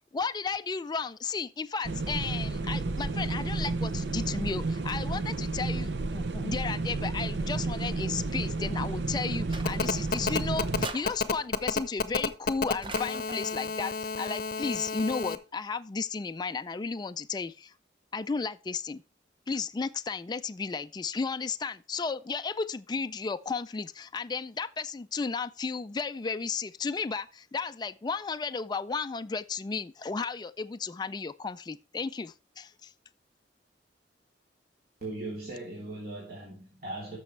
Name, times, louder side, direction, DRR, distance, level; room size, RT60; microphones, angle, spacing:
voice 1, 0.1-17.7 18.1-19.0 19.5-32.9, left 4 dB, 25° left, 0.3 m, -34 dB
sound 1, 1.8-10.9, right 3 dB, 75° right, 0.7 m, -31 dB
sound 2, 9.5-10.3 10.8-11.7 12.8-13.6, right 3 dB, 30° right, 0.6 m, -43 dB
Telephone, 9.7-15.4, left 4 dB, 55° left, 0.7 m, -30 dB
voice 2, 35.0-37.2, right 2 dB, 55° right, 3.3 m, -39 dB
13.0 x 6.2 x 3.2 m
head